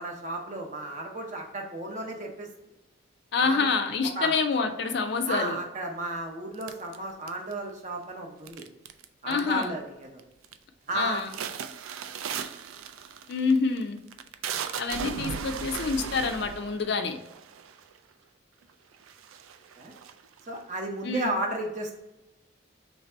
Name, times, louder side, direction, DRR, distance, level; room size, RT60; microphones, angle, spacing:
voice 1, 0.0-2.5 3.4-3.6 4.2-4.3 5.3-8.6 9.2-10.2 10.9-11.2 19.8-19.9 20.5-21.9, right 1 dB, 35° right, 2 dB, 0.7 m, -33 dB
voice 2, 3.3-5.6 9.3-9.7 10.9-11.3 13.3-14.0 14.8-17.2 21.0-21.4, left 4 dB, 55° left, 6 dB, 0.4 m, -27 dB
sound 1, 6.6-7.7 8.5-9.0 9.3-9.8 10.2-10.6 10.9-18.0 18.6-18.7 19.0-20.6, right 7 dB, 90° right, 0.3 m, -37 dB
3.3 x 2.6 x 4.3 m, 0.95 s
head